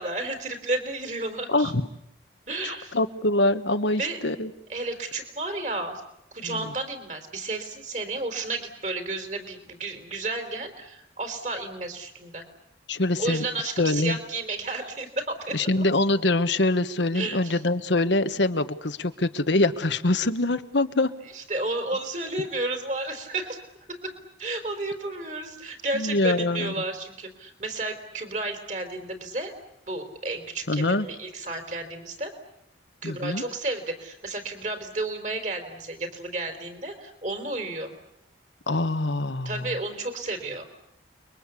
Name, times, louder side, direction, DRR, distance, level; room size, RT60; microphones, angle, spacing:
voice 1, 0.0-1.7 2.5-3.0 4.0-4.2 4.7-6.0 6.3-12.4 13.2-15.8 17.1-17.6 21.3-23.6 23.9-24.1 24.4-29.5 29.9-32.3 33.0-37.9 39.4-40.6, right 2 dB, 40° right, 7 dB, 4.3 m, -32 dB
voice 2, 1.5-1.9 2.6-4.5 6.4-6.6 12.9-13.5 13.8-14.2 15.5-21.1 25.9-26.7 30.7-31.1 33.0-33.4 38.7-39.7, left 2 dB, 75° left, 9 dB, 1.4 m, -24 dB
29.5 x 22.5 x 8.5 m, 0.81 s
head